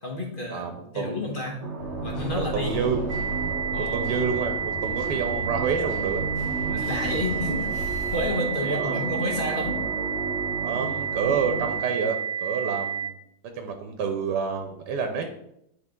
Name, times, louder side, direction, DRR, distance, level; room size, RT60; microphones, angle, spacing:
voice 1, 0.0-0.7 0.9-1.6 2.0-2.8 3.7-3.9 6.7-7.7 8.1-9.8, left 1 dB, 40° left, 0 dB, 1.0 m, -30 dB
voice 2, 0.5-1.2 2.3-3.0 3.8-6.2 8.6-9.0 10.6-13.2 13.5-15.3, right 5 dB, 90° right, 5 dB, 1.3 m, -28 dB
sound 1, 1.6-11.8, right 3 dB, 45° right, 1.2 m, -34 dB
sound 2, 1.8-8.3, equal, 85° left, 1.7 m, -37 dB
sound 3, 3.1-13.1, right 8 dB, 25° right, 1.1 m, -30 dB
9.9 x 3.4 x 3.7 m, 0.78 s
omnidirectional pair, 1.8 m